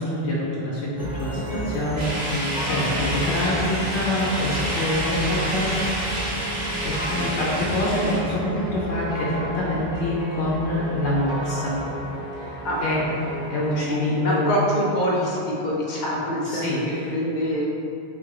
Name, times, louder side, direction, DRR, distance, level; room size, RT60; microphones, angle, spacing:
voice 1, 0.0-6.2 6.8-11.8 12.4-12.5 12.8-13.1 13.5-14.6 16.5-17.1, left 1 dB, 90° left, -6 dB, 1.0 m, -26 dB
sound 1, 1.0-14.2, equal, 5° right, 0.7 m, -32 dB
sound 2, 2.0-8.2, right 1 dB, 75° right, 1.3 m, -29 dB
sound 3, 2.7-6.4, left 2 dB, 75° left, 1.1 m, -39 dB
voice 2, 12.6-13.2 13.8-17.6, equal, 50° left, -4 dB, 0.7 m, -26 dB
3.9 x 2.5 x 4.6 m, 2.7 s
omnidirectional pair, 1.1 m